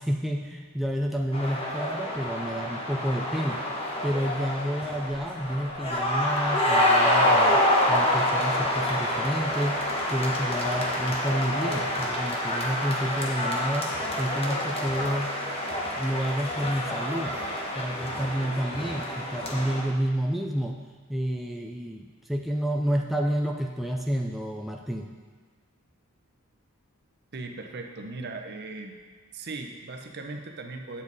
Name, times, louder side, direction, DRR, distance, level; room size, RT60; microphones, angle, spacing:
voice 1, 0.0-3.6 4.0-15.4 16.0-17.3 17.7-20.8 21.1-25.1, equal, ahead, 0 dB, 0.4 m, -30 dB
sound 1, 1.3-19.8, left 1 dB, 25° left, 1.2 m, -27 dB
voice 2, 27.3-29.0 29.3-31.0, right 3 dB, 50° right, 4 dB, 0.8 m, -38 dB
8.9 x 7.5 x 4.0 m, 1.5 s
head